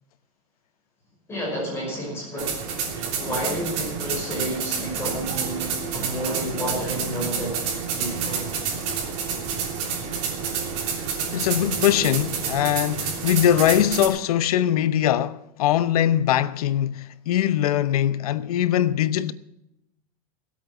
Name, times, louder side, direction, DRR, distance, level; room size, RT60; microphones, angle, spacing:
voice 1, 1.3-2.6 3.1-8.4, equal, 15° left, 5.5 m, -30 dB
sound 1, 2.4-14.1, right 6 dB, 40° right, 3.4 m, -29 dB
voice 2, 11.3-19.3, left 11 dB, 85° left, 0.8 m, -22 dB
18.5 x 8.4 x 6.0 m
supercardioid pair, 165°, 18 cm